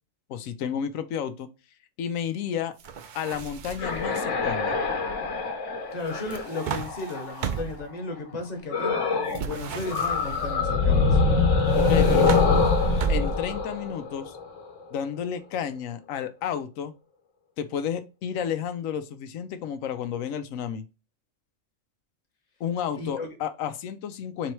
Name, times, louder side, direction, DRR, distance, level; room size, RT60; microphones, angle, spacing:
voice 1, 0.3-1.5 2.0-2.7 3.1-4.8 11.7-12.4 13.1-14.4 14.9-16.9 17.6-20.8 22.6-24.5, left 8 dB, 90° left, 1.0 m, -31 dB
sound 1, 2.8-4.1 6.0-7.9 9.3-10.5 11.7-13.6, right 7 dB, 60° right, 0.5 m, -34 dB
sound 2, 3.4-7.6 8.7-9.5 9.7-14.6, left 4 dB, 70° left, 1.3 m, -24 dB
voice 2, 5.9-11.2 22.9-23.3, left 2 dB, 35° left, 1.1 m, -35 dB
3.9 x 3.1 x 4.4 m
omnidirectional pair, 1.3 m